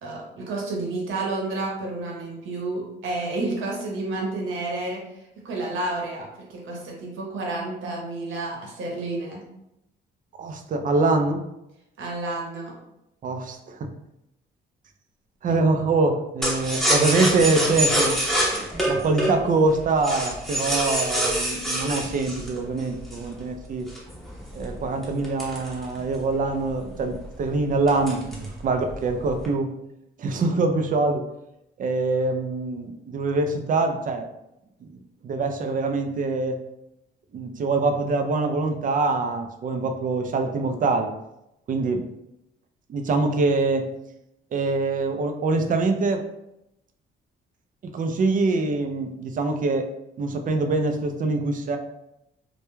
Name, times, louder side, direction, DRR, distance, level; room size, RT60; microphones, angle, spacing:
voice 1, 0.0-5.0 5.4-9.4 12.0-12.7 15.5-15.6, right 2 dB, 75° right, -1 dB, 0.9 m, -30 dB
voice 2, 10.4-11.4 13.2-13.9 15.4-18.2 18.5-23.9 24.5-29.8 30.2-31.3 31.8-34.3 34.8-36.6 37.3-41.1 41.7-42.1 42.9-43.9 44.5-46.2 47.8-49.9 50.2-51.8, right 3 dB, 40° right, 6 dB, 0.4 m, -24 dB
sound 1, 16.4-23.3 23.9-26.3 26.7-26.8 27.1-27.4 27.9-28.6 28.9-29.5, equal, ahead, 0.7 m, -25 dB
2.2 x 2.2 x 3.0 m, 0.86 s
cardioid pair, 90°, 20 cm